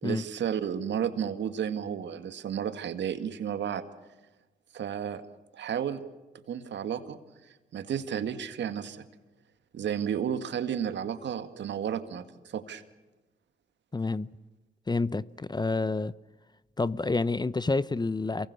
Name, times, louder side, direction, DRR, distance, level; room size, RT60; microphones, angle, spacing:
voice 1, 0.0-3.8 4.7-5.2 5.5-6.0 6.5-7.2 7.7-9.0 9.7-12.8, right 8 dB, 65° right, 2.1 m, -32 dB
voice 2, 13.9-14.3 14.9-16.1 16.8-18.5, left 3 dB, 20° left, 0.8 m, -28 dB
27.5 x 23.5 x 6.9 m
supercardioid pair, 50°, 20 cm